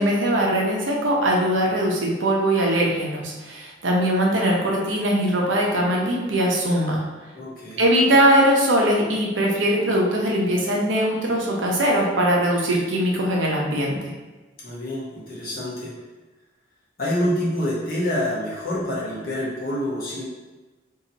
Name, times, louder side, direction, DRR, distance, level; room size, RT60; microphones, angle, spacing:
voice 1, 0.0-7.0 7.8-14.1, right 1 dB, 75° right, -2 dB, 0.8 m, -21 dB
voice 2, 7.3-7.8 14.6-16.0 17.0-20.2, left 1 dB, 50° left, -6 dB, 1.2 m, -27 dB
3.1 x 2.8 x 4.0 m, 1.2 s
head